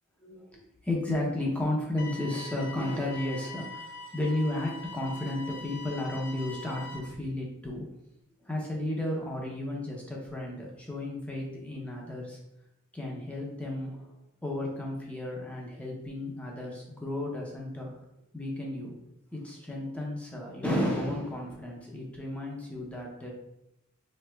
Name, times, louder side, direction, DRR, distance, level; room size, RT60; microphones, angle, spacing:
voice 1, 0.2-7.9 8.4-12.4 12.9-14.1 14.4-17.9 18.3-18.9 19.3-23.3, left 1 dB, 5° left, -2 dB, 0.6 m, -33 dB
sound 1, 2.0-7.0, left 2 dB, 55° left, 0.5 m, -43 dB
4.5 x 3.1 x 2.2 m, 0.86 s
head